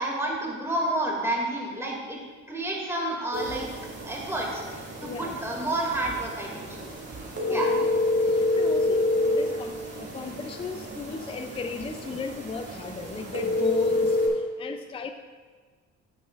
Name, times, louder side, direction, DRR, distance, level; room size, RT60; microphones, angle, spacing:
voice 1, 0.0-2.2 2.5-3.7 4.1-4.6 5.0-6.8 7.5-7.7, right 1 dB, 10° right, -2 dB, 2.2 m, -29 dB
sound 1, 3.3-14.3, left 2 dB, 35° right, 2.2 m, -28 dB
voice 2, 5.0-5.3 7.4-7.9 8.3-15.1, left 4 dB, 20° left, 8 dB, 0.4 m, -36 dB
8.7 x 8.4 x 2.4 m, 1.5 s
cardioid pair, 90°, 30 cm